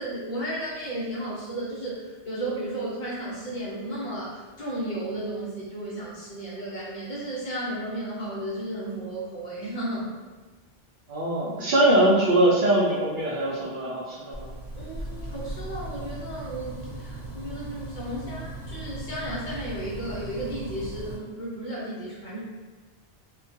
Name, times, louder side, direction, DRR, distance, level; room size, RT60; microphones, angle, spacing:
voice 1, 0.0-10.1 14.7-22.4, right 1 dB, 50° left, -7 dB, 0.7 m, -34 dB
voice 2, 11.1-14.5, right 1 dB, 60° right, -6 dB, 0.7 m, -22 dB
sound 1, 14.3-21.1, right 1 dB, 75° left, 1.0 m, -38 dB
2.3 x 2.2 x 2.6 m, 1.3 s
omnidirectional pair, 1.1 m